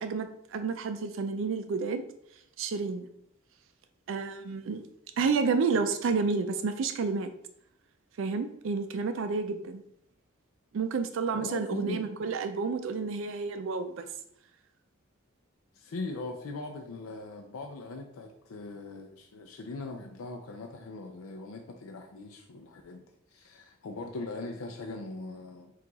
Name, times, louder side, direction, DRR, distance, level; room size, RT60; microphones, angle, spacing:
voice 1, 0.0-2.0 2.6-3.1 4.1-4.8 5.2-7.3 8.2-9.8 10.7-13.9, right 4 dB, 65° right, 8 dB, 0.4 m, -30 dB
voice 2, 11.3-12.1 15.7-25.7, left 3 dB, 90° left, 4 dB, 0.4 m, -40 dB
4.6 x 2.4 x 3.9 m, 0.73 s
head